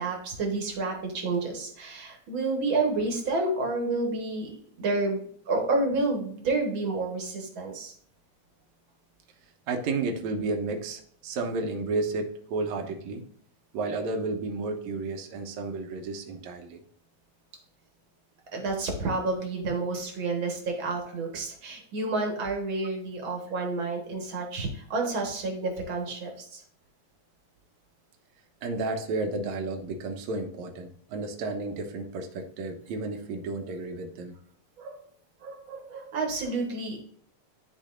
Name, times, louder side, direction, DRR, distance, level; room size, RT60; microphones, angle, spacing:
voice 1, 0.0-4.5 4.8-7.9 18.5-26.6 34.8-35.0 35.4-37.0, right 3 dB, 50° right, 2 dB, 1.9 m, -30 dB
voice 2, 9.7-13.2 13.7-16.8 28.6-34.4, right 3 dB, 75° right, 3 dB, 2.3 m, -32 dB
12.0 x 4.7 x 2.5 m, 0.63 s
omnidirectional pair, 3.4 m